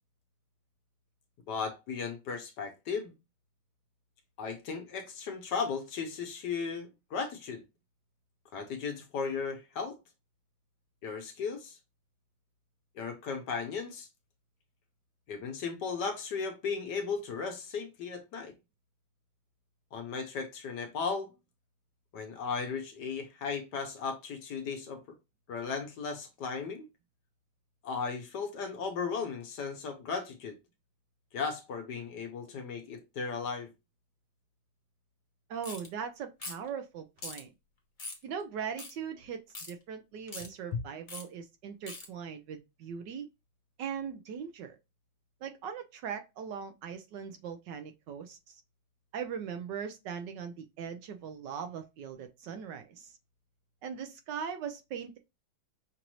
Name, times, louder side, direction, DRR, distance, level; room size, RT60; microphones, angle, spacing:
voice 1, 1.5-3.1 4.4-7.6 8.5-10.0 11.0-11.8 12.9-14.1 15.3-18.5 19.9-21.3 22.1-25.0 25.5-26.9 27.8-30.6 31.3-33.7 40.7-40.8, left 5 dB, 65° left, 1.3 m, -36 dB
voice 2, 35.5-37.5 38.2-39.4 39.7-43.3 43.8-44.8 45.4-48.6 49.1-53.2 53.8-55.2, right 7 dB, 70° right, 1.1 m, -40 dB
sound 1, 35.6-35.9 36.4-36.7 37.2-37.4 38.0-38.2 38.8-38.9 39.5-39.7 40.3-40.5 41.1-41.2 41.9-42.1, left 3 dB, 40° left, 0.7 m, -41 dB
6.0 x 2.6 x 3.0 m
omnidirectional pair, 2.2 m